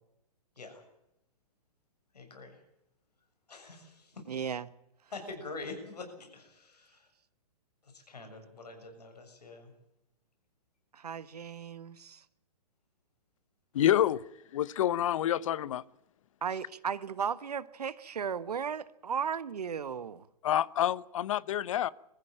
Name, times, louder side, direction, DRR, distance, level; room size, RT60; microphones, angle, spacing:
voice 1, 2.1-2.6 3.5-4.3 5.1-7.1 7.8-9.7 16.5-16.6, left 3 dB, 85° left, 6.9 m, -45 dB
voice 2, 4.3-4.7 10.9-12.2 16.4-20.2, right 7 dB, 80° right, 1.3 m, -35 dB
voice 3, 13.7-14.2 14.5-15.8 20.4-21.9, left 11 dB, 55° left, 0.8 m, -27 dB
22.5 x 15.0 x 8.8 m
hypercardioid pair, 130°, 20 cm